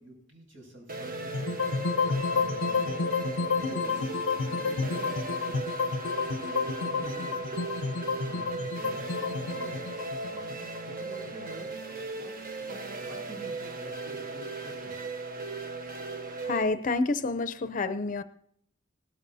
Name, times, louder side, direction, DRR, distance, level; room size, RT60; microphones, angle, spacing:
voice 1, 0.0-3.1 3.6-4.1 4.4-5.4 6.4-7.9 8.2-15.1, right 1 dB, 80° right, 1 dB, 6.5 m, -49 dB
sound 1, 0.9-16.6, right 3 dB, 45° right, 1.1 m, -37 dB
sound 2, 1.3-11.5, left 4 dB, 85° left, 0.6 m, -30 dB
voice 2, 16.4-18.2, left 3 dB, 40° left, 11 dB, 0.6 m, -28 dB
19.0 x 12.5 x 2.7 m, 0.65 s
head